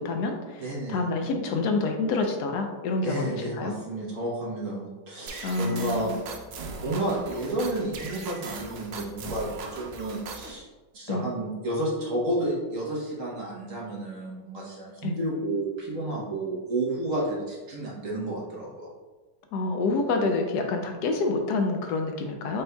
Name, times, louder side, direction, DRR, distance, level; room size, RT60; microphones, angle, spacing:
voice 1, 0.0-3.7 5.4-6.1 11.1-11.2 15.0-15.2 19.5-22.6, left 3 dB, 75° left, 4 dB, 1.1 m, -27 dB
voice 2, 0.6-1.1 3.0-6.1 6.5-10.7 10.9-18.9, right 1 dB, 50° right, -4 dB, 1.4 m, -31 dB
sound 1, 5.3-10.6, right 4 dB, 80° right, 0.5 m, -39 dB
5.2 x 4.2 x 2.2 m, 1.2 s
omnidirectional pair, 1.8 m